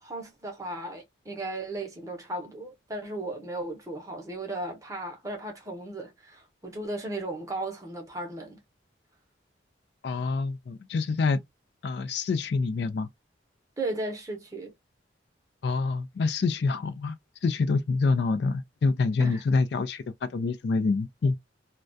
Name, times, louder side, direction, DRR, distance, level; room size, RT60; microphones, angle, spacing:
voice 1, 0.0-8.6 13.8-14.7 19.2-19.4, right 2 dB, 15° right, 0.7 m, -36 dB
voice 2, 10.0-11.4 11.8-13.1 15.6-17.2 17.4-21.3, left 4 dB, 60° left, 0.3 m, -26 dB
2.2 x 2.2 x 2.5 m
head